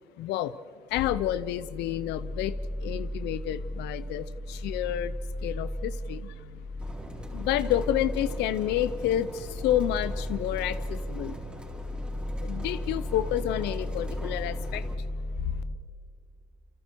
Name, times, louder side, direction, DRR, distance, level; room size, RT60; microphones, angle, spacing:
voice 1, 0.2-0.6 0.9-5.1 5.4-6.3 7.3-11.4 12.4-14.9 15.4-15.5, left 12 dB, 85° left, 15 dB, 0.7 m, -29 dB
sound 1, 0.9-15.8, left 1 dB, 35° left, 1.5 m, -35 dB
sound 2, 6.8-15.0, equal, 5° right, 3.9 m, -43 dB
28.5 x 27.0 x 4.6 m, 2.2 s
cardioid pair, 110°, 17 cm